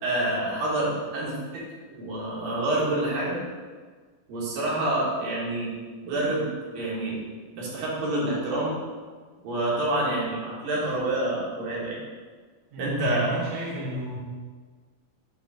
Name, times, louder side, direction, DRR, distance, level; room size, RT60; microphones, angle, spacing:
voice 1, 0.0-3.4 4.3-5.7 6.0-6.5 6.7-7.2 7.5-8.8 9.4-12.0 12.8-13.3, right 1 dB, 75° right, -6 dB, 3.5 m, -27 dB
voice 2, 12.7-14.2, right 1 dB, 60° right, -6 dB, 2.6 m, -32 dB
8.4 x 3.4 x 6.2 m, 1.5 s
omnidirectional pair, 4.0 m